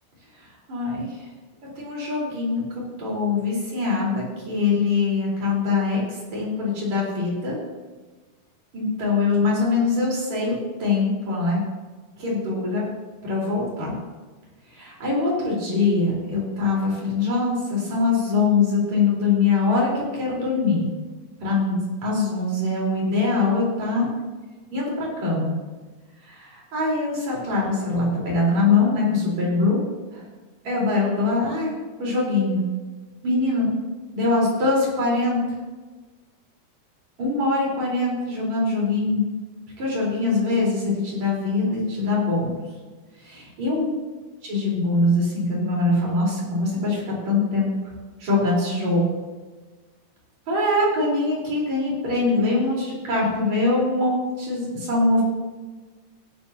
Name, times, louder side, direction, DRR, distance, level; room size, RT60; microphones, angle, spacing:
voice 1, 0.7-1.1 1.8-2.7 3.0-7.6 8.7-11.6 12.2-12.8 13.2-13.9 14.7-20.9 21.4-24.1 24.7-25.5 26.3-29.8 30.1-30.2 30.6-31.7 32.0-32.6 33.2-33.7 34.1-35.4 37.2-39.2 39.8-42.5 43.2-43.9 44.4-47.7 48.2-49.0 50.5-55.2, left 3 dB, 55° right, -4 dB, 5.5 m, -23 dB
15.5 x 11.5 x 2.9 m, 1.3 s
omnidirectional pair, 3.9 m